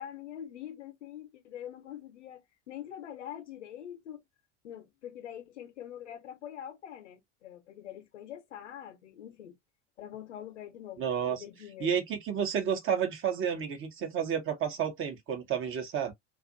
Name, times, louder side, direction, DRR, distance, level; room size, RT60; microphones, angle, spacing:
voice 1, 0.0-4.2 4.6-9.5 10.0-12.0, left 10 dB, 75° left, 0.8 m, -44 dB
voice 2, 11.0-11.4 11.8-16.1, right 8 dB, 35° right, 0.9 m, -31 dB
2.5 x 2.5 x 2.5 m
figure-of-eight pair, 75°, 36 cm